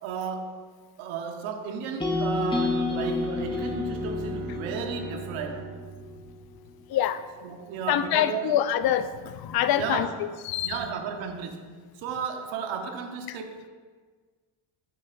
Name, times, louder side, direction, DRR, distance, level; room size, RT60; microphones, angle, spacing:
voice 1, 0.0-5.7 7.4-8.6 9.7-10.1 10.6-13.7, right 6 dB, 80° right, 5 dB, 1.1 m, -34 dB
sound 1, 2.0-6.1, left 3 dB, 10° left, 0.9 m, -30 dB
Bowed string instrument, 3.3-7.3, right 9 dB, 40° right, 0.5 m, -43 dB
voice 2, 7.9-10.1 10.5-10.7, left 11 dB, 50° left, 11 dB, 0.6 m, -25 dB
9.5 x 9.0 x 2.5 m, 1.5 s
cardioid pair, 125°, 46 cm